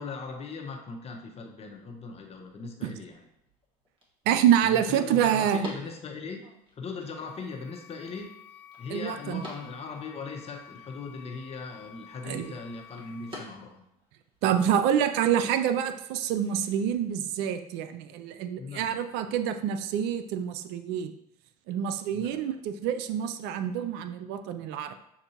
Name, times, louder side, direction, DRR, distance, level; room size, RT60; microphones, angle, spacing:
voice 1, 0.0-3.2 4.6-6.4 6.7-8.3 8.8-13.8 18.6-19.0 22.1-22.4, left 4 dB, 35° left, 2 dB, 0.9 m, -39 dB
sound 1, 1.7-17.1, left 1 dB, 25° right, 1.4 m, -51 dB
voice 2, 4.3-5.7 8.9-9.4 12.2-12.5 14.4-21.1 21.7-24.9, right 9 dB, 65° right, 9 dB, 0.4 m, -27 dB
sound 2, 6.8-13.3, left 9 dB, 90° left, 0.7 m, -52 dB
6.4 x 2.6 x 2.9 m, 0.79 s
hypercardioid pair, 80°, 19 cm